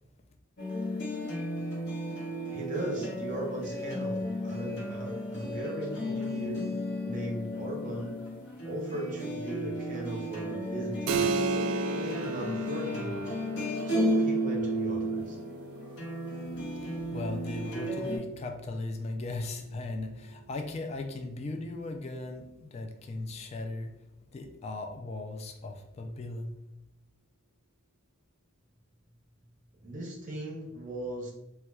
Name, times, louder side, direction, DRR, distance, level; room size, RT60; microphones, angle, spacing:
sound 1, 0.6-18.2, equal, 55° left, 0.9 m, -33 dB
voice 1, 2.5-6.7 7.0-8.2 8.6-11.4 11.9-13.2 13.9-15.4 29.8-31.3, right 1 dB, 40° right, -1 dB, 0.6 m, -38 dB
Keyboard (musical), 11.1-21.3, right 4 dB, 70° right, 0.3 m, -37 dB
voice 2, 17.1-23.9 24.3-26.6, left 2 dB, 30° left, 4 dB, 0.3 m, -37 dB
4.2 x 2.2 x 2.3 m, 0.88 s
head